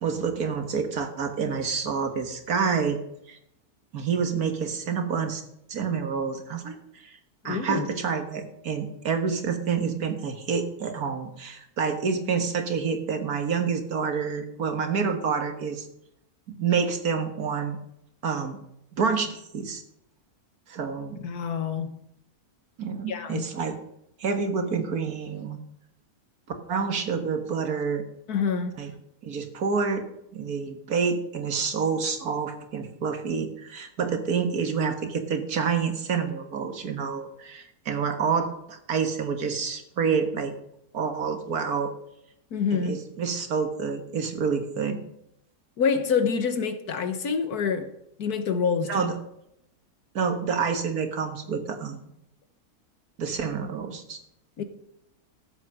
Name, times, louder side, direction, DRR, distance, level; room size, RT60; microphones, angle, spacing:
voice 1, 0.0-3.0 3.3-3.4 3.9-5.4 5.7-6.7 7.0-7.2 7.4-15.9 16.5-17.8 18.2-18.6 18.9-19.8 20.7-21.2 22.8-23.8 24.2-25.6 26.7-28.0 28.8-28.9 29.2-30.1 30.3-40.5 40.9-41.9 42.7-45.0 48.8-49.1 50.2-52.0 53.2-54.2, right 5 dB, 75° right, 2.0 m, -28 dB
voice 2, 7.5-7.9 21.2-22.0 23.1-23.5 28.3-28.7 42.5-43.0 45.8-47.9 48.2-49.1 54.6-54.7, left 6 dB, 80° left, 1.8 m, -26 dB
14.0 x 8.4 x 6.2 m
omnidirectional pair, 1.6 m